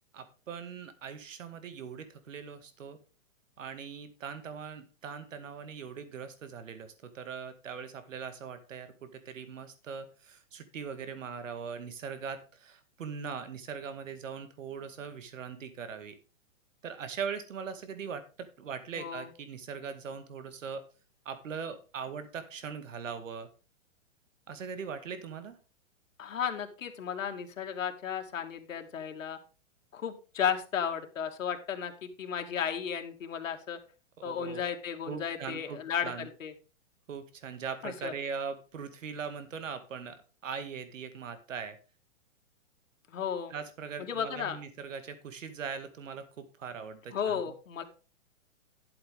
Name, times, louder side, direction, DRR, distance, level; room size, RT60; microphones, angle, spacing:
voice 1, 0.1-3.0 3.6-16.2 16.8-20.8 21.3-23.5 24.5-25.6 34.2-34.6 35.1-36.3 37.1-40.2 40.4-41.8 43.5-47.4, right 6 dB, 70° right, 10 dB, 2.1 m, -40 dB
voice 2, 19.0-19.3 26.2-29.4 29.9-33.8 34.2-36.5 37.8-38.1 43.1-43.5 44.0-44.6 47.1-47.8, left 8 dB, 75° left, 5 dB, 2.3 m, -34 dB
12.0 x 8.0 x 3.6 m, 0.33 s
hypercardioid pair, 175°, 39 cm